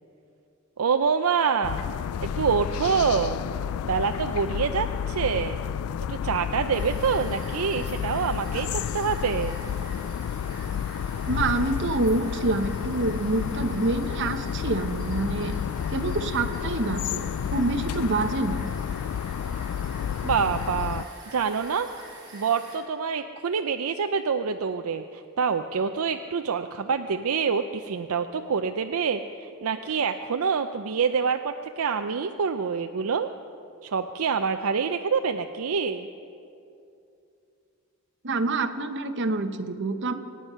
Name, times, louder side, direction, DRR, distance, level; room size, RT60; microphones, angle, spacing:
voice 1, 0.8-1.8 2.4-3.4 3.8-5.6 6.1-8.7 8.9-9.6 20.2-21.0 21.3-21.9 22.3-33.3 33.8-36.1, right 6 dB, 75° right, 7 dB, 0.5 m, -26 dB
sound 1, 1.6-21.0, left 8 dB, 70° left, 0.3 m, -31 dB
sound 2, 6.7-22.8, right 2 dB, 20° right, 4.7 m, -46 dB
voice 2, 11.3-15.5 15.9-18.7 38.2-40.1, right 2 dB, 55° right, 8 dB, 0.9 m, -27 dB
24.5 x 9.6 x 5.6 m, 2.6 s
head